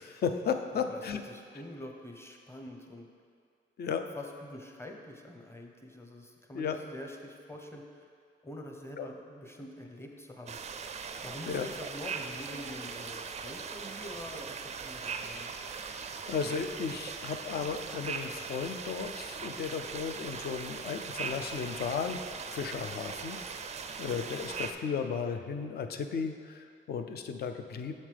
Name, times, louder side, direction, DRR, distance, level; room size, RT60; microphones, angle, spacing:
voice 1, 0.0-1.2 3.8-4.0 6.5-6.8 9.0-9.1 11.5-11.7 15.7-22.2 22.5-27.9, left 6 dB, 55° left, 7 dB, 0.5 m, -35 dB
voice 2, 1.3-3.1 4.1-8.1 8.4-10.6 11.2-15.5, left 1 dB, 10° left, 2 dB, 0.8 m, -45 dB
sound 1, 10.5-24.7, right 5 dB, 35° right, 0.4 m, -40 dB
7.3 x 6.4 x 3.4 m, 2.2 s
cardioid pair, 90°, 20 cm